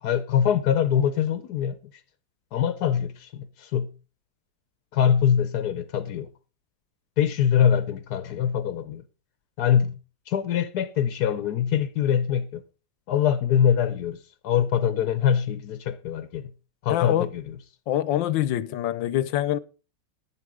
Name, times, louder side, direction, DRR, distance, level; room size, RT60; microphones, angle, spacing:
voice 1, 0.0-1.8 2.5-3.9 4.9-6.3 7.2-9.0 9.6-9.9 10.3-12.6 13.1-14.2 14.4-16.5 16.8-17.6, left 8 dB, 65° left, 1.2 m, -23 dB
voice 2, 16.9-17.3 17.9-19.6, left 12 dB, 80° left, 1.5 m, -25 dB
11.0 x 9.4 x 4.9 m
omnidirectional pair, 2.0 m